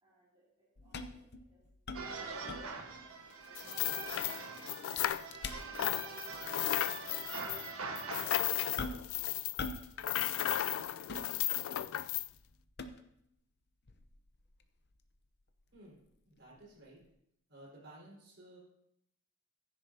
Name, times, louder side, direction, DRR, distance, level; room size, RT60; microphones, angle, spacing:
voice 1, 0.0-12.1, right 1 dB, 25° right, -8 dB, 2.5 m, -69 dB
sound 1, 0.8-3.1 3.4-3.5 3.9-4.3 4.9-6.0 6.3-6.5 7.2-7.3 8.8-9.2 9.6-10.0 10.2-11.8 12.3-13.3 13.9-16.6 17.0-17.1, left 3 dB, 50° left, 0.7 m, -44 dB
sound 2, 1.9-8.8, right 4 dB, 85° right, 1.3 m, -44 dB
sound 3, 3.6-5.5 5.7-12.3, left 12 dB, 70° left, 0.3 m, -35 dB
voice 2, 15.7-17.0 17.5-18.6, right 1 dB, 55° right, -4 dB, 4.7 m, -55 dB
15.5 x 9.9 x 2.8 m, 0.76 s
head